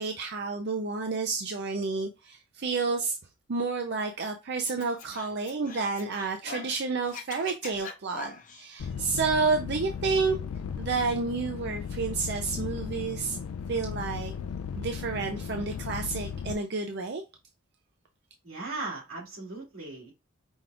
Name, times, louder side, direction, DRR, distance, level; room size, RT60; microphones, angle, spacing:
voice 1, 0.0-3.2 3.5-10.4 10.8-13.4 13.7-14.3 14.8-17.2, right 4 dB, 50° right, 0.5 m, -30 dB
Scratching (performance technique), 4.7-6.8 7.0-8.6, left 5 dB, 40° left, 0.6 m, -42 dB
sound 1, 8.8-16.5, left 6 dB, 80° left, 0.3 m, -36 dB
voice 2, 18.4-20.1, right 3 dB, 90° right, 2.3 m, -38 dB
5.2 x 2.4 x 3.4 m
head